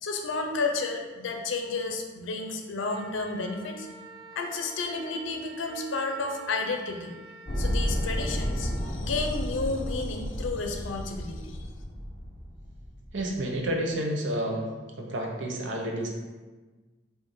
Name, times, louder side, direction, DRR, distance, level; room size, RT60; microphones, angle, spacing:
voice 1, 0.0-3.9 4.3-7.2 7.6-11.7, left 3 dB, 80° left, 4 dB, 0.5 m, -32 dB
Wind instrument woodwind instrument, 2.9-8.9, right 2 dB, 40° right, 0.4 m, -48 dB
sound 1, 7.5-13.8, equal, 25° left, 0.5 m, -32 dB
voice 2, 13.1-14.7 15.0-16.1, right 1 dB, 75° right, 0 dB, 0.7 m, -30 dB
4.7 x 2.6 x 3.1 m, 1.3 s
head